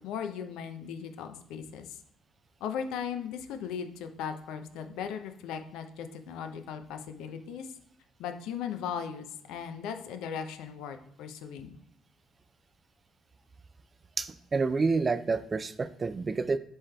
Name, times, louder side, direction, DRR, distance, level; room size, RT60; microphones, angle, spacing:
voice 1, 0.0-2.0 2.6-7.7 8.2-11.7, left 7 dB, 75° left, 7 dB, 0.5 m, -37 dB
voice 2, 14.2-16.6, right 4 dB, 35° right, 13 dB, 0.3 m, -28 dB
7.4 x 3.2 x 2.2 m, 0.68 s
hypercardioid pair, 55°, 0 cm